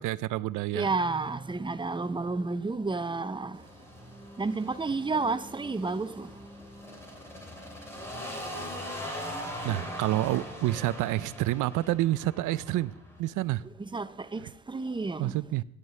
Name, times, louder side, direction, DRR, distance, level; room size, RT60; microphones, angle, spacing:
voice 1, 0.0-0.9 9.6-12.9 13.2-13.6 14.4-14.5 15.2-15.6, right 16 dB, 80° right, 0.5 m, -28 dB
voice 2, 0.7-3.6 4.4-6.3 13.9-14.4 14.7-15.3, right 3 dB, 15° right, 0.5 m, -31 dB
sound 1, 3.5-13.2, equal, 10° left, 2.7 m, -41 dB
13.5 x 9.8 x 3.2 m
cardioid pair, 90°, 30 cm